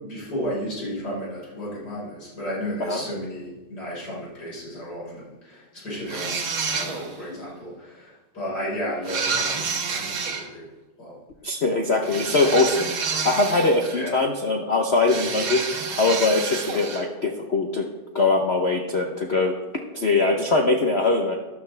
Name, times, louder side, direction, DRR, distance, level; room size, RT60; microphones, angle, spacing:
voice 1, 0.0-10.7 11.0-11.2 13.9-14.2, equal, 45° left, -5 dB, 5.0 m, -33 dB
sound 1, 6.1-7.2 9.0-10.5 12.1-14.1 15.1-17.1, right 5 dB, 70° right, 2.1 m, -29 dB
voice 2, 11.4-12.9 13.2-15.6 16.0-17.9 18.1-19.5 19.9-21.3, left 3 dB, 85° left, 2 dB, 0.5 m, -22 dB
12.5 x 12.0 x 3.3 m, 1.1 s
omnidirectional pair, 2.4 m